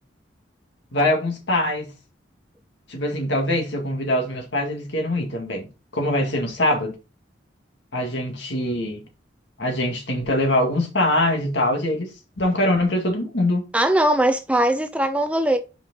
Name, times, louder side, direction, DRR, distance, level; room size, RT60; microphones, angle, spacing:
voice 1, 0.9-1.9 2.9-7.0 7.9-9.0 9.6-12.1 12.4-13.6, left 1 dB, 70° left, 2.1 m, -23 dB
voice 2, 13.7-15.6, right 1 dB, 5° right, 0.5 m, -20 dB
6.2 x 5.1 x 3.9 m
head